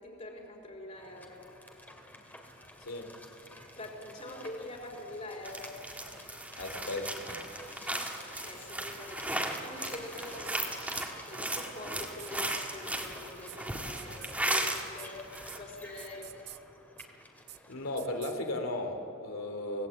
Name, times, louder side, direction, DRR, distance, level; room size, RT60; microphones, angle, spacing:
voice 1, 0.0-1.5 3.7-5.8 8.1-16.4, left 1 dB, 35° left, -3 dB, 4.0 m, -45 dB
sound 1, 1.0-18.2, left 1 dB, 10° left, 2.3 m, -51 dB
sound 2, 5.4-14.9 15.2-15.6, right 1 dB, 5° right, 2.1 m, -36 dB
voice 2, 6.5-7.2 17.7-19.9, left 1 dB, 85° left, 4 dB, 2.8 m, -35 dB
sound 3, 10.5-10.6 11.0-11.1 11.5-11.6 12.0-12.6 13.0-13.1 13.5-13.6 14.0-14.6 15.0-15.1 15.3-15.6 16.0-16.6 17.0-17.1 17.5-17.6 18.0-18.3, right 14 dB, 55° right, 0.7 m, -46 dB
25.0 x 18.0 x 8.5 m, 3.0 s
head